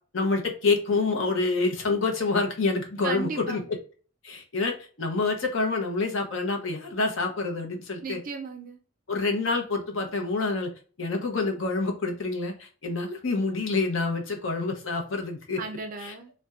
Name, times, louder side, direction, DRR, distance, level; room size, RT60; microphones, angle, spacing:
voice 1, 0.1-3.6 4.2-8.2 9.1-10.7 11.0-15.6 16.0-16.1, left 3 dB, 70° left, 0.8 m, -27 dB
voice 2, 3.0-3.7 8.0-8.8 15.6-16.3, right 4 dB, 40° right, 0.3 m, -35 dB
4.1 x 2.2 x 2.3 m
head